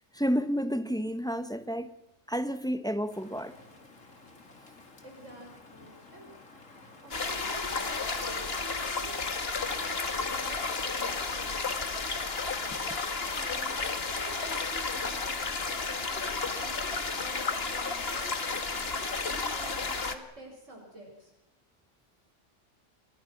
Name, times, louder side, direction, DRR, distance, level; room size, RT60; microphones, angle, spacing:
voice 1, 0.1-1.9 2.3-3.5, equal, 5° left, 1.2 m, -30 dB
Rain, 3.1-8.4, left 3 dB, 80° left, 3.3 m, -53 dB
voice 2, 5.0-6.3 7.0-9.1 9.5-11.7 13.3-16.3 16.5-18.8 19.2-21.3, right 1 dB, 75° right, 6.4 m, -48 dB
sound 1, 7.1-20.2, left 4 dB, 50° left, 2.0 m, -32 dB
29.0 x 22.5 x 6.1 m
omnidirectional pair, 1.3 m